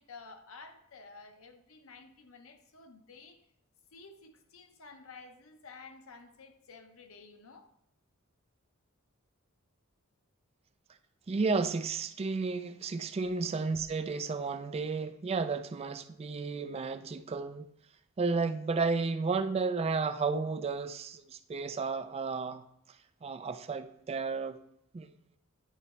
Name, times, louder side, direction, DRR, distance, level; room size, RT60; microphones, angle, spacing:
voice 1, 0.0-3.5 3.9-7.7 13.2-13.3, left 4 dB, 80° left, 0.8 m, -52 dB
voice 2, 11.3-17.7 18.2-22.6 23.2-24.6 24.9-25.1, right 4 dB, 30° right, 0.3 m, -32 dB
9.9 x 4.1 x 4.3 m
head